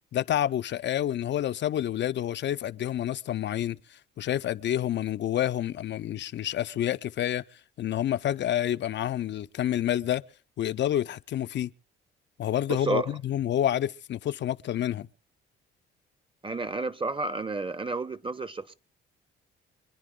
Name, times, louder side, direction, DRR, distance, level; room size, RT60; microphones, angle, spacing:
voice 1, 0.1-7.4 7.8-10.2 10.6-11.7 12.4-15.1, left 11 dB, 55° left, 0.6 m, -28 dB
voice 2, 12.7-13.1 16.4-18.7, right 3 dB, 25° right, 1.1 m, -31 dB
26.5 x 10.0 x 3.7 m
supercardioid pair, 70°, 21 cm